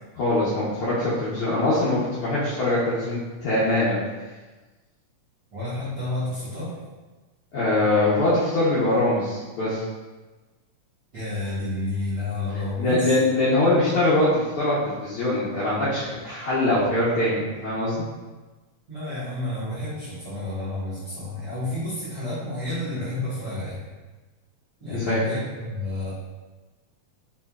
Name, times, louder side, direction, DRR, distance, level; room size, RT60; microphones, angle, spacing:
voice 1, 0.2-4.0 7.5-9.8 12.8-18.0 24.9-25.2, left 1 dB, 75° left, -10 dB, 1.2 m, -23 dB
voice 2, 5.5-6.7 11.1-13.1 18.9-23.8 24.8-26.1, left 2 dB, 60° right, -13 dB, 1.1 m, -30 dB
4.2 x 3.0 x 2.3 m, 1.2 s
omnidirectional pair, 3.3 m